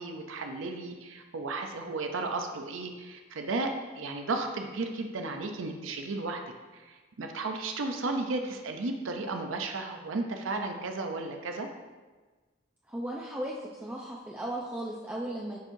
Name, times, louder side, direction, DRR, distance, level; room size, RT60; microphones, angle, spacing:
voice 1, 0.0-6.4 6.7-11.7, right 3 dB, 85° right, 4 dB, 0.6 m, -34 dB
voice 2, 12.9-15.6, right 1 dB, 10° right, -3 dB, 0.5 m, -36 dB
10.5 x 4.5 x 2.6 m, 1.3 s
head